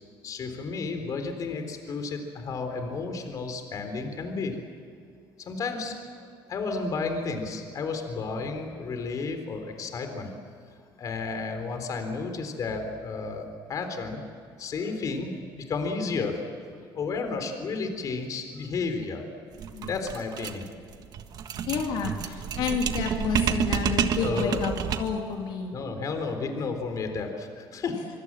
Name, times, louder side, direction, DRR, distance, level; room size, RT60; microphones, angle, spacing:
voice 1, 0.2-4.6 5.4-10.3 11.0-14.2 14.6-16.4 16.7-19.3 19.9-20.7 24.2-24.7 25.7-28.1, left 4 dB, 40° left, 6 dB, 3.9 m, -32 dB
sound 1, 19.5-25.3, right 8 dB, 50° right, 1.5 m, -29 dB
voice 2, 21.7-25.7, left 6 dB, 70° left, 1 dB, 3.2 m, -30 dB
25.0 x 25.0 x 7.6 m, 2.4 s
cardioid pair, 140°, 9 cm